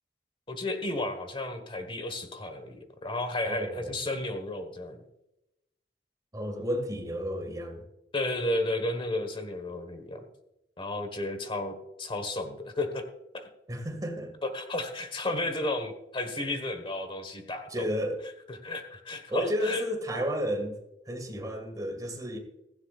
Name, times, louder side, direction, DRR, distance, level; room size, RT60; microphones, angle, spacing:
voice 1, 0.5-5.0 8.1-10.2 10.8-13.0 13.3-13.5 14.4-17.8 18.5-19.8, left 2 dB, 30° left, 1.5 m, -33 dB
voice 2, 3.4-4.0 6.3-7.8 13.7-14.3 17.7-18.2 19.3-20.8 21.1-22.4, equal, 20° right, 2.1 m, -32 dB
16.5 x 15.5 x 2.5 m
head